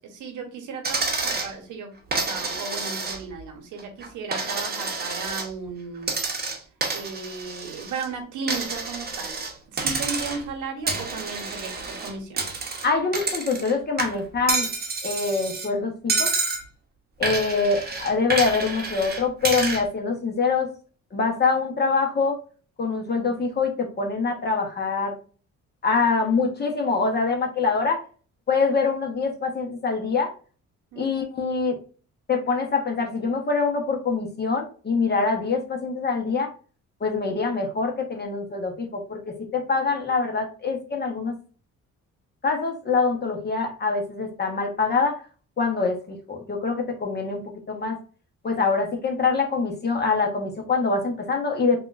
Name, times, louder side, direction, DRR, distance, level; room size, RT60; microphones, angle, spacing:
voice 1, 0.0-6.1 6.9-9.4 9.7-12.5 30.9-31.1, right 4 dB, 85° right, 3 dB, 1.0 m, -35 dB
Coin (dropping), 0.8-1.5 2.1-3.4 3.8-5.5 6.0-8.1 8.5-9.5 9.8-10.5 10.9-13.7 14.0-15.7 16.1-16.6 17.2-19.8, right 3 dB, 30° right, 0.9 m, -29 dB
voice 2, 12.8-14.7 15.0-16.3 17.2-20.7 21.1-22.4 22.8-25.1 25.8-28.0 28.5-30.3 31.0-31.8 32.3-36.5 37.0-39.2 39.5-41.3 42.4-45.2 45.6-48.0 48.4-51.8, left 4 dB, 35° left, 2 dB, 1.0 m, -24 dB
3.5 x 2.4 x 2.4 m, 0.38 s
cardioid pair, 90°, 30 cm